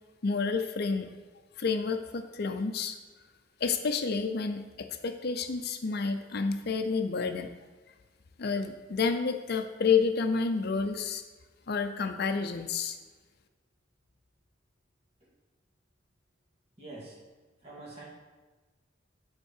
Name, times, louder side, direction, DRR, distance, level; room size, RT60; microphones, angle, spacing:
voice 1, 0.2-1.1 1.6-3.0 3.6-7.5 8.4-11.2 11.7-13.0, left 5 dB, 50° left, 7 dB, 0.5 m, -29 dB
voice 2, 16.8-17.2 17.6-18.1, right 2 dB, 30° right, -6 dB, 2.7 m, -45 dB
8.0 x 4.4 x 6.5 m, 1.3 s
head